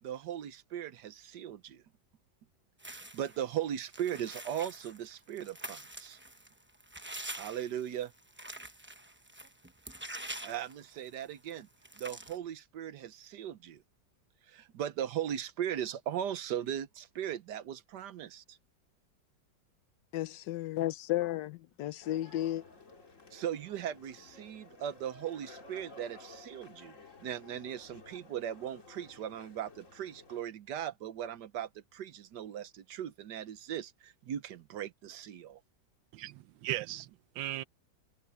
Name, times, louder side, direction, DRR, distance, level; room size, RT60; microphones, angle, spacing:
voice 1, 0.0-1.8 2.9-6.2 7.3-8.1 10.4-11.7 12.0-13.8 14.5-18.6 23.3-35.6, right 10 dB, 70° right, 1.4 m, -38 dB
sound 1, 2.8-3.4 3.9-11.2 11.5-11.6 11.8-12.4, right 1 dB, 15° right, 0.5 m, -46 dB
voice 2, 20.1-22.6, left 14 dB, 75° left, 1.3 m, -33 dB
sound 2, 22.0-30.4, left 3 dB, 45° left, 2.6 m, -54 dB
voice 3, 36.1-37.6, right 14 dB, 90° right, 1.4 m, -37 dB
omnidirectional pair, 1.9 m